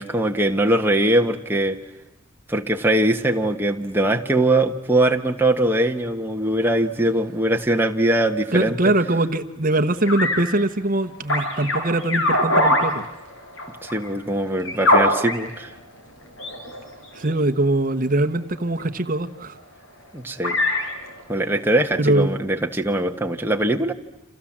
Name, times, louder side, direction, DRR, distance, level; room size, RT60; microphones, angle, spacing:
voice 1, 0.0-1.8 2.5-8.8 13.8-15.7 20.1-20.6 21.3-23.9, right 1 dB, 10° right, 3 dB, 1.4 m, -21 dB
voice 2, 8.5-13.1 17.1-19.6 22.0-22.3, right 2 dB, 40° right, 8 dB, 1.1 m, -22 dB
sound 1, 10.1-10.4 11.3-15.7 16.4-17.3 18.6-18.8 19.6-19.7 20.3-21.5, left 1 dB, 65° left, 5.4 m, -22 dB
29.5 x 27.5 x 7.4 m, 0.96 s
head